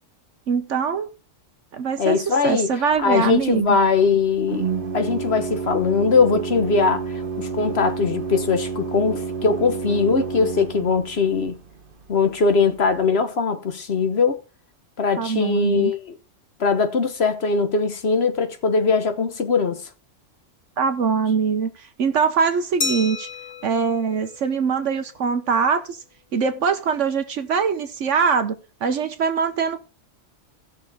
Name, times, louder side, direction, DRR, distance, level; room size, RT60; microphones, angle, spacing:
voice 1, 0.5-1.1 1.7-3.8 15.2-15.9 20.8-23.3 23.6-26.0 26.3-28.5 28.8-29.8, right 6 dB, 70° right, 1.2 m, -22 dB
voice 2, 2.0-2.7 3.0-11.6 12.1-14.4 15.0-16.1 16.6-19.8, left 4 dB, 55° left, 1.3 m, -21 dB
Organ, 2.9-13.0, right 5 dB, 45° right, 1.2 m, -31 dB
Glass, 22.8-25.3, left 4 dB, 35° left, 0.8 m, -32 dB
17.0 x 6.3 x 3.5 m
omnidirectional pair, 1.4 m